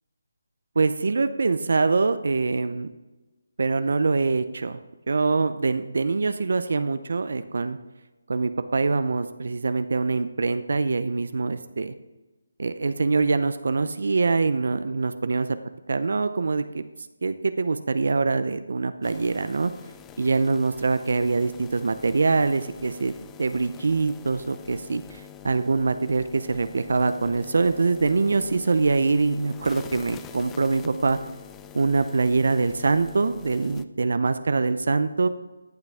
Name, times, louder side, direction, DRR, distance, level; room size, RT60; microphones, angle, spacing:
voice 1, 0.8-2.9 3.6-4.8 5.1-7.8 8.3-11.9 12.6-15.5 15.9-16.8 17.2-19.7 20.2-31.2 31.7-35.3, right 4 dB, 65° right, 11 dB, 0.6 m, -24 dB
sound 1, 19.0-33.8, left 9 dB, 10° left, 0.4 m, -45 dB
14.0 x 8.1 x 3.5 m, 1.1 s
figure-of-eight pair, 160°, 0 cm